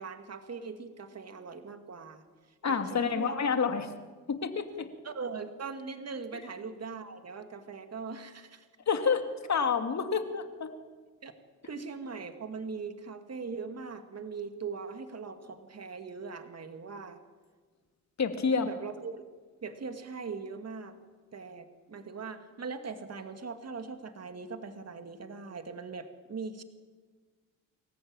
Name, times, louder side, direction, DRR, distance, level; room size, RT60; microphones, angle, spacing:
voice 1, 0.0-3.4 5.0-8.7 10.0-10.2 11.2-11.3 11.6-17.2 18.6-19.2 19.6-21.0 21.3-26.6, right 5 dB, 45° right, 7 dB, 2.3 m, -41 dB
voice 2, 2.6-3.9 4.3-4.9 8.9-10.7 18.2-18.7, left 5 dB, 50° left, 7 dB, 2.4 m, -29 dB
26.0 x 14.5 x 9.0 m, 1.5 s
supercardioid pair, 50°, 36 cm